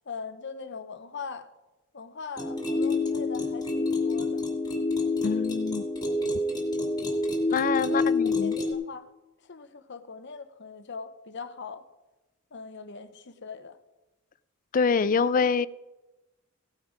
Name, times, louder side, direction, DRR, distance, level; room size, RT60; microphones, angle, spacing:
voice 1, 0.1-1.5 1.9-4.4 7.8-9.1 9.4-11.8 12.5-13.8, left 5 dB, 55° left, 0.9 m, -41 dB
sound 1, 2.4-8.7, left 3 dB, 20° left, 2.4 m, -27 dB
voice 2, 5.2-5.8 7.5-8.5 14.7-15.7, left 5 dB, 40° left, 0.4 m, -25 dB
17.0 x 8.8 x 5.1 m
head